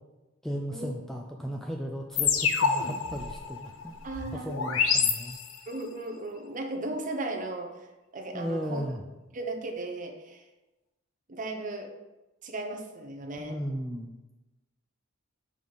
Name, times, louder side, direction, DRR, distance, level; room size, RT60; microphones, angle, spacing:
voice 1, 0.4-4.0 4.3-5.4 8.3-9.0 13.4-14.1, equal, ahead, 1 dB, 0.3 m, -35 dB
sound 1, 2.2-5.8, left 6 dB, 65° left, 0.6 m, -28 dB
voice 2, 4.0-4.8 5.7-7.9 8.1-8.8 9.3-10.4 11.3-11.9 12.4-13.6, right 2 dB, 40° right, 3 dB, 0.7 m, -36 dB
5.3 x 4.9 x 3.9 m, 1.1 s
head